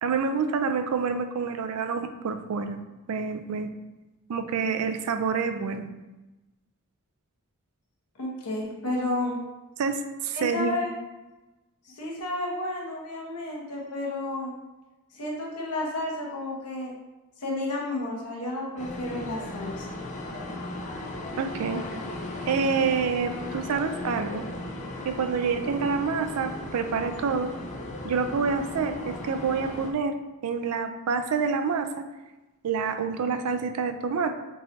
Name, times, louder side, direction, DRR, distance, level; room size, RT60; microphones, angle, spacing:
voice 1, 0.0-2.8 3.1-3.7 4.3-5.9 9.8-10.7 21.4-21.8 22.5-24.4 25.0-27.5 28.0-30.2 30.4-32.1 32.6-34.3, right 5 dB, 75° right, 8 dB, 0.4 m, -27 dB
voice 2, 8.2-9.4 10.3-10.9 11.9-14.5 15.1-16.9 17.4-19.9, left 2 dB, 85° left, -2 dB, 1.0 m, -31 dB
sound 1, 18.8-29.9, left 2 dB, 30° left, 0.4 m, -36 dB
3.9 x 2.6 x 3.9 m, 1.1 s
head